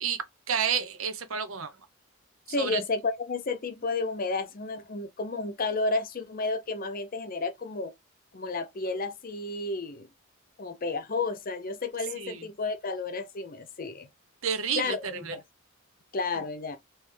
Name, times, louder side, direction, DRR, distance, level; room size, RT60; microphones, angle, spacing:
voice 1, 0.0-1.7 2.6-2.8 12.2-12.5 14.4-15.4, right 7 dB, 80° right, 0.8 m, -30 dB
voice 2, 2.5-7.9 8.3-10.1 10.6-14.1 14.7-15.0 15.3-15.4 16.1-16.8, left 3 dB, 45° left, 0.6 m, -31 dB
3.3 x 3.0 x 3.3 m
head